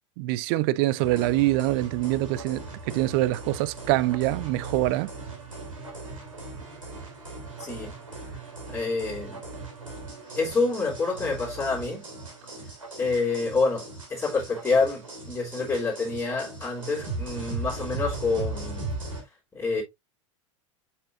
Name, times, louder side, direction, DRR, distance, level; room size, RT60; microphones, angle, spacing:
voice 1, 0.2-5.1, right 17 dB, 45° right, 0.5 m, -25 dB
sound 1, 1.0-19.2, right 3 dB, 85° right, 3.2 m, -38 dB
voice 2, 7.6-7.9 8.7-9.4 10.4-12.1 13.0-18.9 19.5-19.8, left 3 dB, 15° left, 3.2 m, -27 dB
6.8 x 5.7 x 2.5 m
figure-of-eight pair, 85°, 16 cm